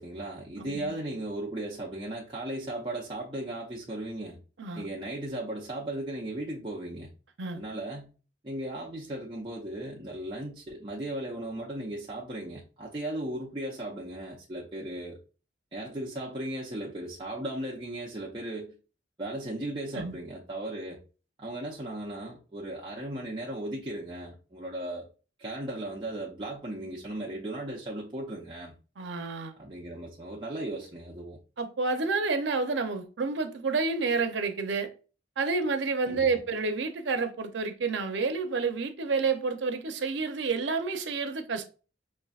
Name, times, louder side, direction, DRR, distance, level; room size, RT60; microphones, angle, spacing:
voice 1, 0.0-4.4 4.8-7.1 7.5-8.1 8.4-15.2 15.7-18.7 19.2-21.0 21.4-25.1 25.4-28.7 29.6-31.4 36.1-36.3, right 1 dB, 25° right, 0.7 m, -36 dB
voice 2, 0.6-0.9 4.6-4.9 7.4-7.6 19.9-20.2 29.0-29.5 31.6-34.9 35.4-41.7, right 4 dB, 80° right, 0.6 m, -29 dB
5.4 x 2.6 x 2.4 m
head